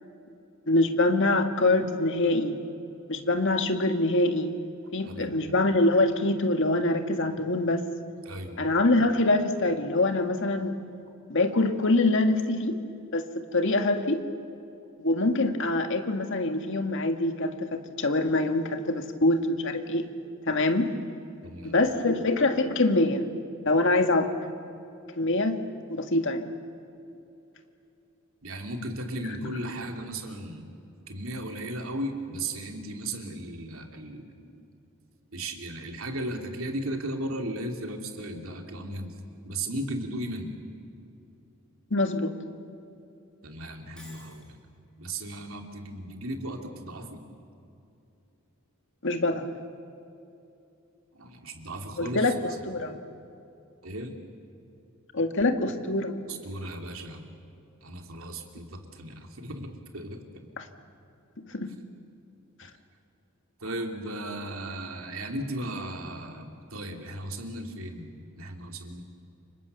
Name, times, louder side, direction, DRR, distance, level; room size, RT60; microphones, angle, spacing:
voice 1, 0.7-2.6 3.1-4.5 4.9-7.8 8.6-10.7 11.3-12.8 13.1-13.2 13.5-14.2 15.0-20.1 20.5-20.9 21.6-23.2 23.7-24.3 25.2-25.6 25.9-26.5 41.9-42.3 49.0-49.5 52.0-52.3 52.7-53.0 55.1-56.2 60.6-60.7 61.4-61.8, left 2 dB, 60° left, 6 dB, 1.9 m, -24 dB
voice 2, 5.0-5.6 8.2-8.7 21.4-21.9 28.4-30.7 31.1-34.6 35.3-39.1 39.4-40.6 43.4-44.6 45.0-47.2 51.1-52.3 53.8-54.2 56.3-57.3 57.8-59.7 59.9-60.2 63.6-69.0, right 1 dB, 70° right, 3 dB, 3.0 m, -36 dB
Shatter, 44.0-44.5, equal, 5° left, 7.4 m, -50 dB
29.5 x 25.5 x 7.0 m, 2.7 s
head